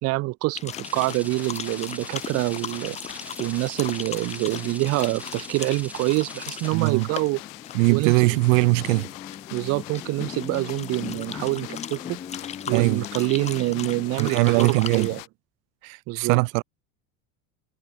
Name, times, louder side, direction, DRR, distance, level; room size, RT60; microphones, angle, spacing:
voice 1, 0.0-3.0 3.4-7.4 7.9-8.1 9.5-12.2 12.7-15.2 16.1-16.4, right 22 dB, 35° right, 0.8 m, -26 dB
sound 1, 0.6-15.2, left 8 dB, 15° left, 1.0 m, -37 dB
sound 2, 0.7-15.3, left 26 dB, 80° left, 5.7 m, -43 dB
sound 3, 0.8-6.7, right 1 dB, 5° right, 2.2 m, -42 dB
voice 2, 6.7-7.1 7.7-9.1 12.7-13.0 14.2-15.1 15.8-16.6, right 28 dB, 80° right, 0.8 m, -21 dB
cardioid pair, 180°, 40 cm